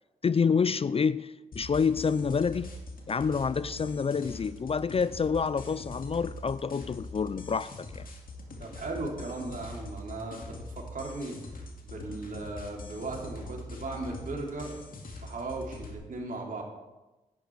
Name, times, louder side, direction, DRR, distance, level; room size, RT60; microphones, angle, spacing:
voice 1, 0.2-2.7 3.1-8.1, left 5 dB, 35° left, 0.4 m, -28 dB
sound 1, 1.5-15.9, left 2 dB, 60° left, 2.3 m, -43 dB
voice 2, 8.6-14.8 15.2-16.6, right 2 dB, 55° right, 3.2 m, -37 dB
10.5 x 9.2 x 4.6 m
supercardioid pair, 45°, 17 cm